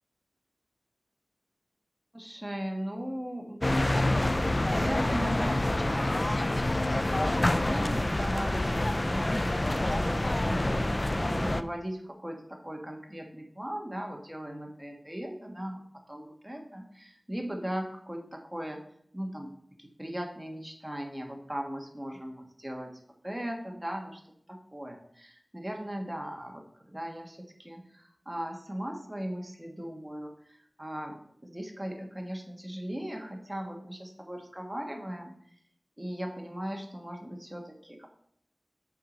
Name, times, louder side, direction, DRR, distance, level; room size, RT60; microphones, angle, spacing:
voice 1, 2.1-3.6 4.4-6.4 6.7-10.2 10.5-18.8 19.1-19.5 19.8-24.2 24.5-35.4 36.0-38.1, equal, 15° right, 2 dB, 1.5 m, -38 dB
sound 1, 3.6-11.6, left 1 dB, 35° left, 0.4 m, -27 dB
7.2 x 4.7 x 6.2 m, 0.67 s
wide cardioid pair, 60°, 0 cm